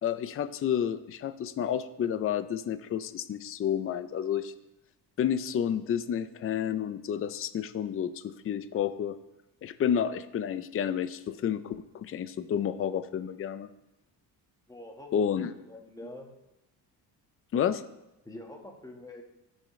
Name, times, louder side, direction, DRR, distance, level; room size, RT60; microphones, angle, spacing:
voice 1, 0.0-4.5 5.2-9.2 9.6-13.7 15.1-15.5 17.5-17.8, left 9 dB, 35° left, 12 dB, 0.5 m, -30 dB
voice 2, 14.7-16.3 18.2-19.2, left 1 dB, 10° left, 1 dB, 1.6 m, -45 dB
18.5 x 6.4 x 3.2 m, 0.92 s
cardioid pair, 125°, 42 cm